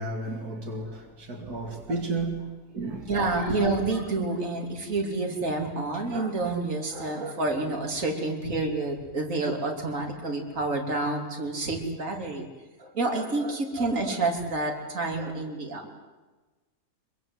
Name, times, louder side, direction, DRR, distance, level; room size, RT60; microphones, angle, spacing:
voice 1, 0.0-3.1 3.5-3.6, right 2 dB, 90° right, 3.1 m, -33 dB
voice 2, 3.1-12.5 12.8-15.8, right 2 dB, 60° right, 3.6 m, -28 dB
25.0 x 23.5 x 8.0 m
omnidirectional pair, 1.6 m